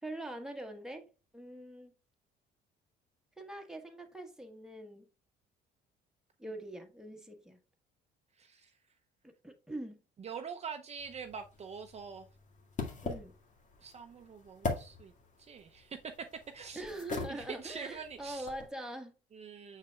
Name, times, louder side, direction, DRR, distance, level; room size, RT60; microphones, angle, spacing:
voice 1, 0.0-1.0 1.3-1.9 3.4-5.1 6.4-7.6 9.2-10.0 13.0-13.3 16.7-19.1, right 1 dB, 5° right, 1.3 m, -43 dB
voice 2, 8.4-8.7 10.2-12.3 13.8-15.1 15.4-16.3 16.5-16.8 17.3-18.5 19.3-19.8, right 6 dB, 35° right, 0.6 m, -44 dB
sound 1, 11.0-18.7, left 3 dB, 40° left, 1.9 m, -43 dB
6.5 x 6.5 x 2.3 m
cardioid pair, 95°, 19 cm